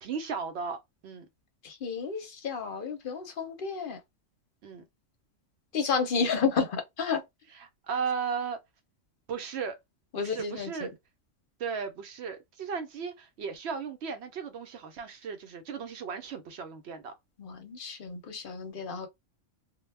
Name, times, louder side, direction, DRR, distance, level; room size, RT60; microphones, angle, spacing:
voice 1, 0.0-1.3 4.6-4.8 7.5-8.6 9.3-9.8 10.2-10.9 11.6-17.1, right 6 dB, 65° right, 0.8 m, -36 dB
voice 2, 1.6-4.0 5.7-7.2 10.1-10.9 17.4-19.1, left 5 dB, 55° left, 0.7 m, -31 dB
2.2 x 2.0 x 3.2 m
omnidirectional pair, 1.3 m